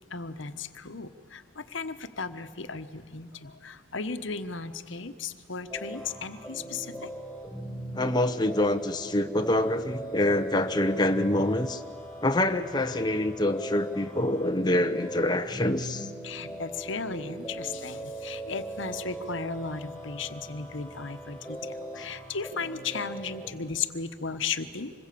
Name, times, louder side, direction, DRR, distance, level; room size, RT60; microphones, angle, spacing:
voice 1, 0.1-7.1 16.2-24.9, left 5 dB, 65° left, 10 dB, 1.2 m, -35 dB
sound 1, 5.7-23.5, right 1 dB, ahead, 6.0 m, -40 dB
voice 2, 8.0-11.8 12.2-16.1, left 1 dB, 20° left, 6 dB, 0.9 m, -26 dB
26.5 x 21.5 x 8.5 m, 2.1 s
head